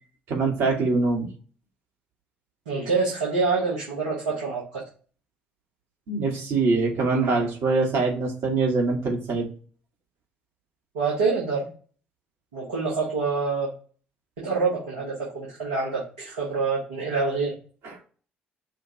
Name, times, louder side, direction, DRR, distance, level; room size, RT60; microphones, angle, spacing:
voice 1, 0.3-1.3 6.1-9.5 17.8-17.9, right 3 dB, 55° right, 0 dB, 1.8 m, -23 dB
voice 2, 2.6-4.8 10.9-11.7 12.5-13.7 14.4-17.5, right 4 dB, 75° right, -6 dB, 1.5 m, -26 dB
5.6 x 2.5 x 3.0 m, 0.41 s
figure-of-eight pair, 45°, 5 cm